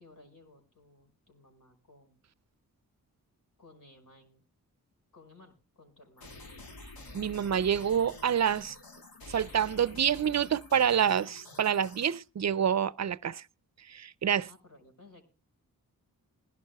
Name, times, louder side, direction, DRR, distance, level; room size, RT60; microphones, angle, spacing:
voice 1, 0.0-2.2 3.6-4.4 5.1-6.4 14.5-15.2, left 2 dB, 65° left, 5.3 m, -57 dB
sound 1, 6.2-12.2, left 2 dB, 85° left, 2.1 m, -49 dB
voice 2, 7.1-8.8 9.3-13.4 13.9-14.5, right 8 dB, 50° right, 0.5 m, -27 dB
21.0 x 11.5 x 2.2 m
cardioid pair, 55°, 35 cm